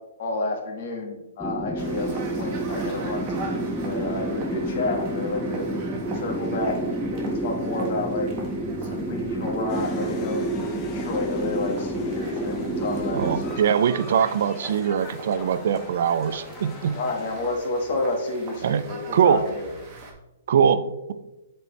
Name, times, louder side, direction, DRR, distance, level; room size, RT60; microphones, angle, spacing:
voice 1, 0.2-5.6 6.1-8.3 8.8-13.8 17.0-19.7, left 2 dB, 50° left, 1 dB, 1.5 m, -30 dB
sound 1, 1.4-13.6, right 1 dB, ahead, 0.4 m, -29 dB
sound 2, 1.8-20.1, right 3 dB, 30° right, 1.4 m, -42 dB
sound 3, 9.7-17.6, left 3 dB, 25° left, 0.8 m, -41 dB
voice 2, 13.1-17.0 18.6-18.8 19.1-19.4 20.5-21.1, right 8 dB, 60° right, 13 dB, 0.4 m, -22 dB
7.9 x 4.4 x 3.2 m, 1.0 s
hypercardioid pair, 155°, 0 cm